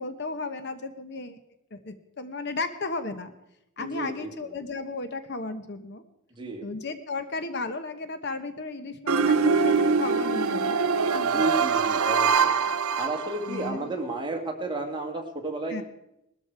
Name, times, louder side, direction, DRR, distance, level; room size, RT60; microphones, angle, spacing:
voice 1, 0.0-1.4 1.7-3.3 3.8-6.0 6.6-10.8 11.1-11.4 13.5-13.9 15.7-15.8, left 3 dB, 50° left, 10 dB, 1.0 m, -34 dB
voice 2, 3.8-4.5 6.4-6.7 11.2-12.5 13.0-15.8, right 2 dB, 20° right, 1 dB, 2.1 m, -32 dB
sound 1, 9.1-13.7, right 5 dB, 85° right, 0.9 m, -23 dB
19.0 x 13.0 x 4.7 m, 0.84 s
head